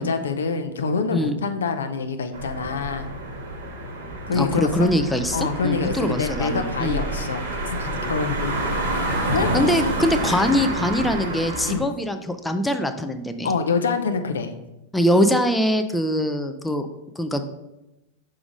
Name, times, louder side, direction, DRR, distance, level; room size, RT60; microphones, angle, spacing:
voice 1, 0.0-3.1 4.3-4.9 5.3-9.0 9.3-9.5 9.8-9.9 10.3-10.4 11.1-11.2 11.7-11.9 13.4-14.5, left 5 dB, 70° left, 8 dB, 0.5 m, -26 dB
sound 1, 2.3-11.7, right 1 dB, 60° right, 1.4 m, -28 dB
voice 2, 4.3-7.0 9.5-13.5 14.9-16.9 17.2-17.4, equal, 5° left, 6 dB, 0.5 m, -23 dB
5.9 x 3.7 x 5.0 m, 0.94 s
figure-of-eight pair, 90°, 0 cm